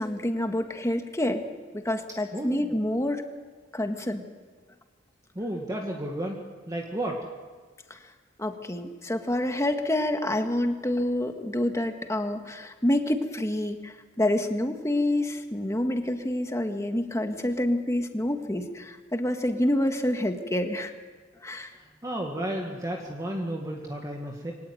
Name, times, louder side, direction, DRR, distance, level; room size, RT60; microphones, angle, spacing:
voice 1, 0.0-1.4 1.7-3.2 3.7-4.2 7.9-8.0 8.4-20.9 21.4-21.7, left 1 dB, 15° left, 5 dB, 1.8 m, -27 dB
voice 2, 2.3-2.7 5.4-6.4 6.7-7.3 21.8-24.5, right 1 dB, 20° right, 0 dB, 2.1 m, -32 dB
24.5 x 18.0 x 9.4 m, 1.4 s
head